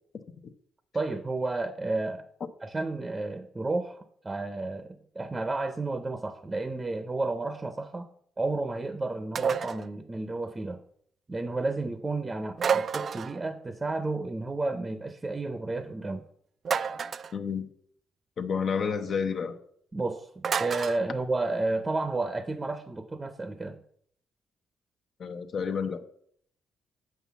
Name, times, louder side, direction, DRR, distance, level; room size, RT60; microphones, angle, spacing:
voice 1, 0.9-2.3 2.6-8.1 8.4-10.8 11.3-16.3 19.9-23.8, right 2 dB, 20° right, 0.7 m, -32 dB
sound 1, 9.4-9.9 12.6-13.4 16.6-17.3 20.4-21.0, right 6 dB, 50° right, 0.4 m, -29 dB
voice 2, 17.3-17.7 18.4-19.6 25.2-26.0, left 6 dB, 55° left, 0.8 m, -30 dB
7.4 x 5.7 x 7.1 m
cardioid pair, 90°, 0 cm